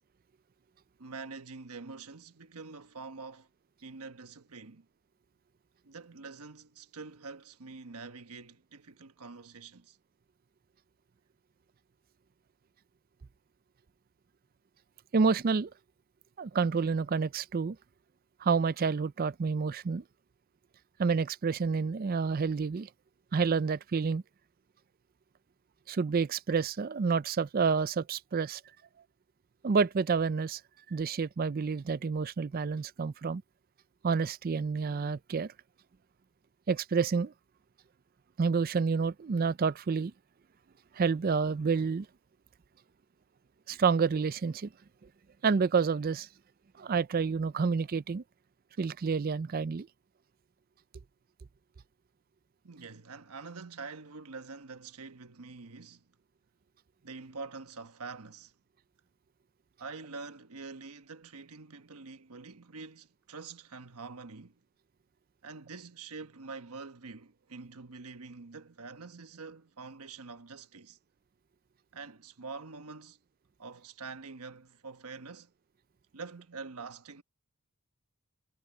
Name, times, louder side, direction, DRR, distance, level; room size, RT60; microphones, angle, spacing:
voice 1, 1.0-3.5 3.8-4.9 5.8-10.0 52.6-56.1 57.0-58.5 59.8-64.6 65.4-71.0 71.9-73.2 73.6-75.5 76.1-77.2, right 4 dB, 80° right, 1.2 m, -45 dB
voice 2, 15.1-15.7 16.4-17.8 18.4-20.0 21.0-22.9 23.3-24.2 25.9-28.6 29.6-30.6 30.9-33.4 34.0-35.5 36.7-37.3 38.4-40.1 40.9-42.1 43.7-44.7 45.4-46.3 46.8-48.2 48.8-49.9, right 5 dB, 40° right, 0.4 m, -29 dB
head